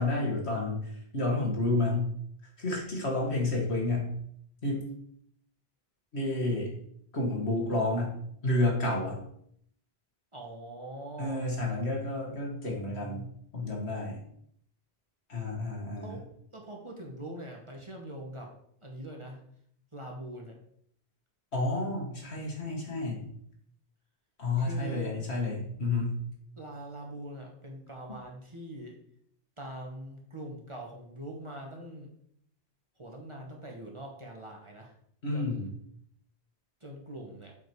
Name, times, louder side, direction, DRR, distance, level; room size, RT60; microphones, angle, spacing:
voice 1, 0.0-2.1 2.6-4.1 4.6-4.9 6.1-6.7 7.1-8.2 8.4-9.2 11.2-13.2 13.5-14.2 15.3-16.1 21.5-23.3 24.4-26.2 35.2-35.7, left 2 dB, 75° left, -2 dB, 2.3 m, -30 dB
voice 2, 10.3-11.5 15.9-16.2 16.5-18.5 18.8-19.4 19.9-20.6 24.6-25.1 26.6-29.0 29.6-32.1 33.0-34.9 35.3-35.7 36.8-37.6, right 1 dB, 30° right, 0 dB, 1.4 m, -43 dB
7.3 x 5.3 x 4.7 m, 0.68 s
omnidirectional pair, 1.1 m